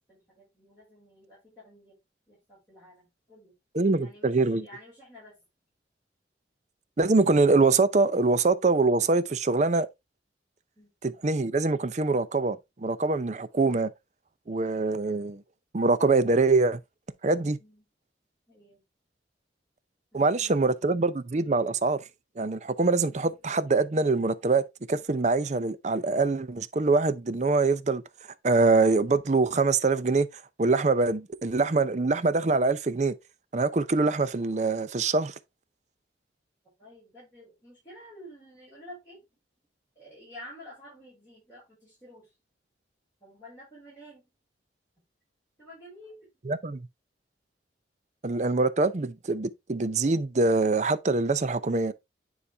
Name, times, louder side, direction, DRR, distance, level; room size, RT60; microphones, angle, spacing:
voice 1, 0.1-1.9 2.3-3.5 4.0-5.3 10.8-10.9 17.6-17.8 18.5-18.8 20.1-20.6 36.8-39.2 40.0-42.3 43.2-44.3 45.6-46.3, equal, 15° left, 5.3 m, -50 dB
voice 2, 3.7-4.7 7.0-9.9 11.0-13.9 14.5-15.4 15.7-16.8 17.2-17.6 20.1-22.0 22.4-28.0 28.4-30.3 30.6-33.1 33.5-35.3 46.4-46.9 48.2-51.9, right 3 dB, 40° right, 0.5 m, -24 dB
9.9 x 4.1 x 3.4 m
head